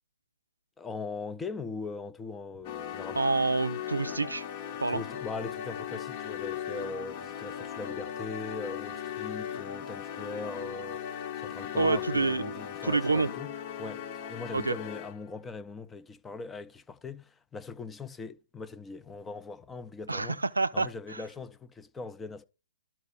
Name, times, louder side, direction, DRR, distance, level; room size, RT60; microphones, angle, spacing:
voice 1, 0.8-3.2 4.9-20.4 20.7-22.5, left 4 dB, 10° left, 0.6 m, -40 dB
sound 1, 2.6-15.3, left 9 dB, 35° left, 0.9 m, -38 dB
voice 2, 3.2-4.5 4.8-5.0 11.8-12.5 12.8-13.3 14.5-14.7 20.1-21.2, right 3 dB, 80° right, 0.5 m, -28 dB
12.0 x 4.4 x 6.7 m
figure-of-eight pair, 125°, 0 cm